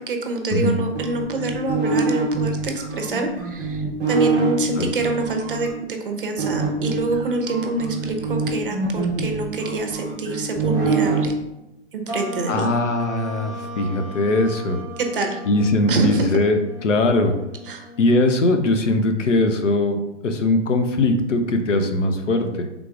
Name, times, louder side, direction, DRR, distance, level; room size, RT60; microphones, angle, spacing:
voice 1, 0.0-11.3 11.9-12.7 15.0-15.4 15.9-16.3 17.7-17.9, right 3 dB, 45° right, 4 dB, 0.7 m, -26 dB
sound 1, 0.9-5.7 6.4-11.3, right 4 dB, 5° right, 1.1 m, -24 dB
sound 2, 12.1-18.8, equal, 30° left, 0.4 m, -37 dB
voice 2, 12.5-14.8 15.5-17.4 18.0-20.0 20.2-22.7, left 2 dB, 85° left, 6 dB, 0.8 m, -20 dB
4.8 x 3.6 x 2.4 m, 0.90 s
hypercardioid pair, 170°, 36 cm